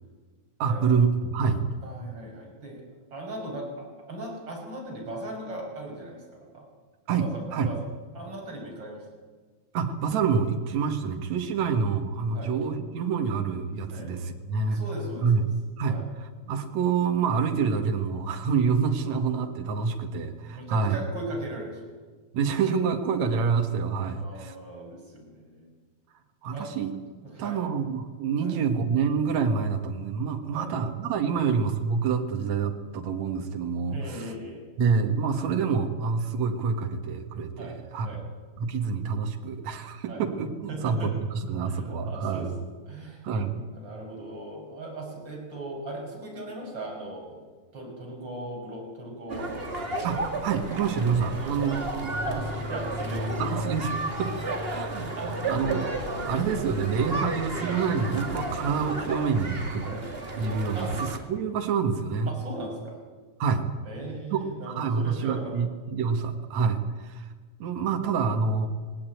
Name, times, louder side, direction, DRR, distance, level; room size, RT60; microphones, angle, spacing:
voice 1, 0.6-1.6 7.1-7.7 9.7-14.8 15.2-15.5 15.8-21.0 22.3-24.5 26.4-26.9 27.4-34.3 34.8-38.1 38.6-42.5 43.2-43.6 50.0-52.5 53.4-53.9 54.2-54.3 54.7-55.9 56.3-59.8 60.4-62.3 63.4-63.6 64.3-64.4 64.7-67.3 67.6-68.7, right 5 dB, 70° right, 5 dB, 2.9 m, -27 dB
voice 2, 1.8-2.8 3.1-6.7 7.1-7.8 8.1-9.0 12.3-12.5 13.9-14.1 14.7-15.5 15.9-16.1 20.5-21.9 24.1-25.7 26.5-26.7 27.2-27.6 28.4-28.5 30.5-30.7 33.9-34.7 37.6-37.7 38.0-38.2 40.1-40.2 40.7-41.1 41.6-42.5 42.9-47.4 47.7-49.5 51.3-51.8 52.2-53.5 54.7-55.6 59.8-60.0 60.7-60.9 62.3-63.0 63.8-65.7, right 1 dB, 40° right, -1 dB, 6.5 m, -38 dB
sound 1, 49.3-61.2, right 2 dB, 20° right, 2.2 m, -32 dB
19.0 x 18.0 x 9.2 m, 1.5 s
omnidirectional pair, 3.3 m